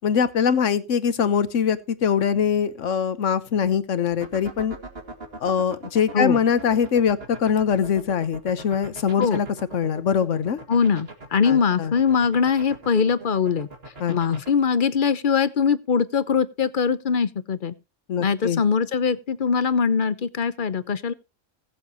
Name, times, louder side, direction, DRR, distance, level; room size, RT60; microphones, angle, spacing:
voice 1, 0.0-4.8 5.4-9.5 9.7-10.6 11.4-11.9 14.0-14.4 18.1-18.6, left 7 dB, 75° left, 1.3 m, -23 dB
sound 1, 4.1-14.5, right 3 dB, 50° right, 2.5 m, -39 dB
voice 2, 10.7-13.7 14.1-17.7 18.2-21.1, left 6 dB, 45° left, 0.9 m, -22 dB
20.5 x 7.6 x 2.9 m
omnidirectional pair, 1.3 m